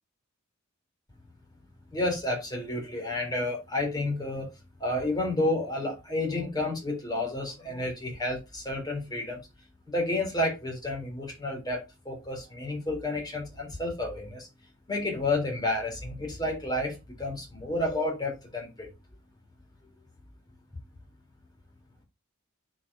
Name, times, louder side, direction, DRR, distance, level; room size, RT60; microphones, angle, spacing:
voice 1, 1.9-4.5 4.8-9.4 9.9-14.5 14.9-18.9, left 2 dB, 20° left, 0 dB, 3.8 m, -30 dB
11.0 x 5.2 x 2.8 m, 0.24 s
head